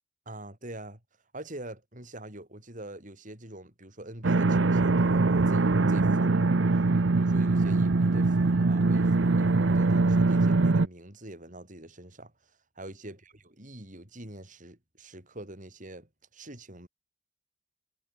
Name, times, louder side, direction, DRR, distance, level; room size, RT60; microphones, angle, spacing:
voice 1, 0.3-1.0 1.3-6.6 7.1-12.3 12.8-16.9, right 1 dB, 45° right, 7.2 m, -44 dB
sound 1, 4.2-10.9, right 3 dB, 75° right, 0.8 m, -23 dB
head